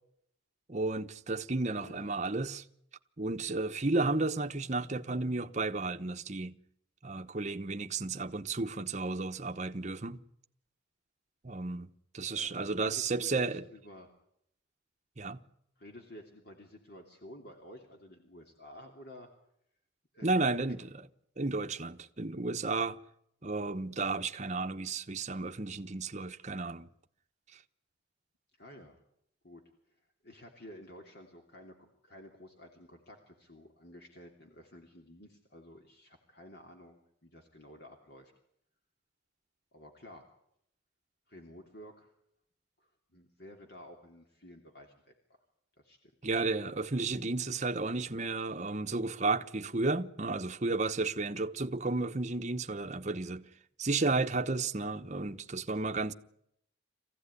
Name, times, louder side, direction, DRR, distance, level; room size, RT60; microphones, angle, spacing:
voice 1, 0.7-2.6 3.2-6.6 7.0-10.2 11.4-11.9 12.1-13.6 15.2-15.4 20.2-21.1 21.4-23.0 23.4-26.9 27.5-27.6 46.2-53.5 53.8-56.1, right 3 dB, 35° right, 1.0 m, -33 dB
voice 2, 1.8-2.1 12.2-14.1 15.8-19.3 20.1-20.6 28.6-29.0 29.4-29.6 30.2-38.3 39.7-40.2 41.3-42.1 43.1-45.1 45.8-46.1, left 1 dB, 55° left, 3.0 m, -52 dB
24.0 x 16.0 x 9.9 m
head